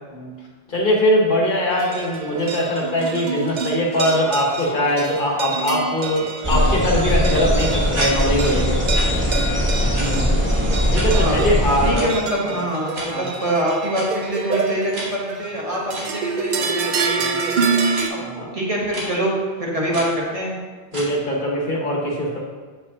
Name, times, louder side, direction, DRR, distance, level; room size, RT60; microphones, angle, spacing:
voice 1, 0.7-8.8 10.0-10.3 10.9-12.1 12.5-12.6 13.1-13.3 17.2-17.4 18.2-18.5 20.9-22.4, equal, 55° left, -2 dB, 1.2 m, -21 dB
sound 1, 1.7-18.1, right 4 dB, 55° right, 0.6 m, -27 dB
sound 2, 6.4-11.9, equal, 10° right, 1.0 m, -20 dB
sound 3, 7.9-8.1 8.9-9.0 9.9-10.0 10.9-11.1 11.9-12.1 12.9-13.1 13.9-14.0 14.9-15.1 15.9-16.0 16.9-17.1 17.9-18.0 18.9-19.0 19.9-20.1 20.9-21.1, right 1 dB, 85° right, 1.8 m, -30 dB
voice 2, 11.1-11.4 11.8-17.7 18.3-20.6, right 1 dB, 35° right, -4 dB, 1.1 m, -25 dB
7.4 x 5.5 x 2.8 m, 1.4 s
omnidirectional pair, 1.0 m